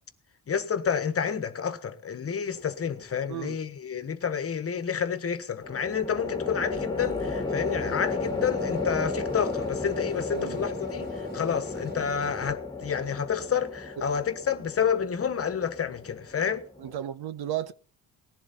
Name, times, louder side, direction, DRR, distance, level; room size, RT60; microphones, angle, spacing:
voice 1, 0.5-16.6, left 7 dB, 40° left, 1.3 m, -29 dB
sound 1, 2.5-3.1 5.6-17.0, left 3 dB, 10° left, 1.8 m, -34 dB
sound 2, 6.7-12.5, left 1 dB, 25° right, 3.4 m, -46 dB
voice 2, 10.3-10.6 16.8-17.7, right 11 dB, 80° right, 1.0 m, -34 dB
18.5 x 11.5 x 4.3 m
cardioid pair, 120°, 37 cm